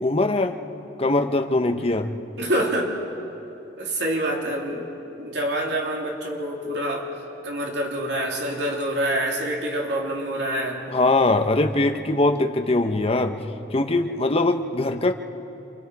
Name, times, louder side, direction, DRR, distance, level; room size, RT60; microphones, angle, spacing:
voice 1, 0.0-0.6 1.0-2.1 10.9-13.4 13.7-15.1, left 2 dB, 35° left, 5 dB, 1.0 m, -21 dB
voice 2, 2.4-3.0 3.8-4.9 5.2-7.1 7.4-10.8, right 1 dB, 75° right, -1 dB, 2.9 m, -26 dB
28.5 x 24.5 x 4.8 m, 2.8 s
head